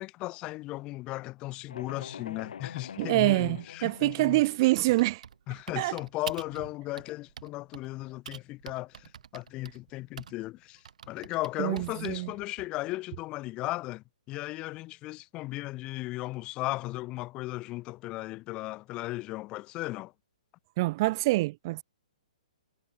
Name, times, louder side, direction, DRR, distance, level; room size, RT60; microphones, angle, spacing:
voice 1, 0.0-4.4 5.5-20.1, left 19 dB, 25° left, 1.8 m, -36 dB
sound 1, 1.7-4.6, left 8 dB, 70° left, 1.9 m, -44 dB
voice 2, 3.0-5.2 5.8-6.0 11.6-12.3 20.8-21.8, right 20 dB, 35° right, 0.4 m, -26 dB
Typing, 4.8-6.6 7.0-7.9 8.2-10.5 10.8-12.3, right 8 dB, 70° right, 5.5 m, -45 dB
hypercardioid pair, 155°, 4 cm